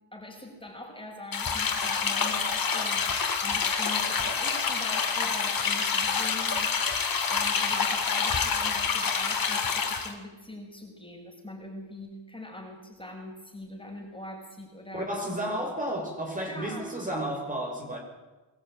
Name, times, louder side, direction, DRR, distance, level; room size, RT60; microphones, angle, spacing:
voice 1, 0.1-3.1 3.4-6.9 7.3-15.1 16.5-17.3, left 1 dB, 10° left, 0 dB, 6.3 m, -42 dB
sound 1, 1.3-10.1, left 5 dB, 50° left, 3.2 m, -27 dB
voice 2, 14.9-18.0, right 1 dB, 15° right, 0 dB, 5.5 m, -32 dB
23.0 x 14.0 x 9.2 m, 1.1 s
cardioid pair, 90°, 45 cm